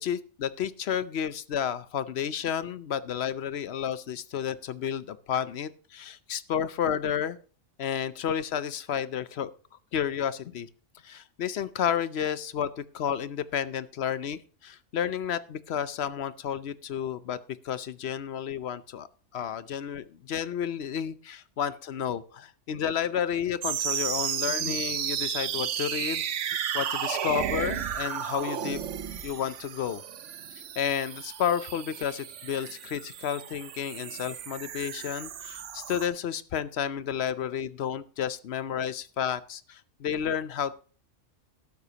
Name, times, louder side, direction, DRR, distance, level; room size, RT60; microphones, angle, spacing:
voice 1, 0.0-7.4 7.8-9.5 9.9-10.7 11.0-17.4 17.6-19.1 19.3-26.2 26.7-28.8 29.2-30.0 30.8-40.8, left 8 dB, 65° left, 16 dB, 0.9 m, -31 dB
sound 1, 23.6-36.1, right 9 dB, 90° right, 1.1 m, -33 dB
13.0 x 12.0 x 2.9 m, 0.40 s
omnidirectional pair, 1.2 m